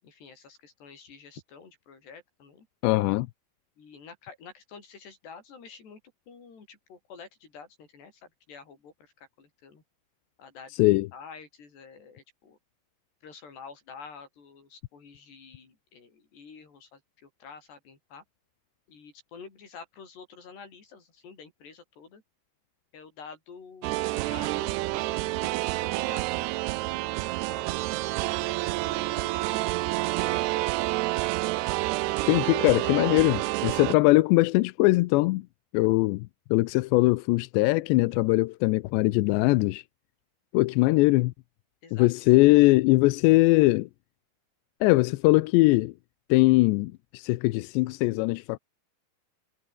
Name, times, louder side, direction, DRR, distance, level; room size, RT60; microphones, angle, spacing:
voice 1, 0.0-2.7 3.8-6.0 6.3-9.8 10.4-10.8 11.1-12.6 13.2-18.2 18.9-22.2 22.9-23.9 24.2-26.5 27.5-29.5 30.2-30.7 41.8-42.3, left 5 dB, 70° left, 8.1 m, -48 dB
voice 2, 2.8-3.3 10.8-11.1 32.3-35.5 35.7-39.8 40.5-41.3 42.0-43.9 44.8-45.9 46.3-48.6, left 21 dB, 90° left, 2.9 m, -21 dB
sound 1, 23.8-33.9, right 20 dB, 80° right, 2.6 m, -28 dB
omnidirectional pair, 5.0 m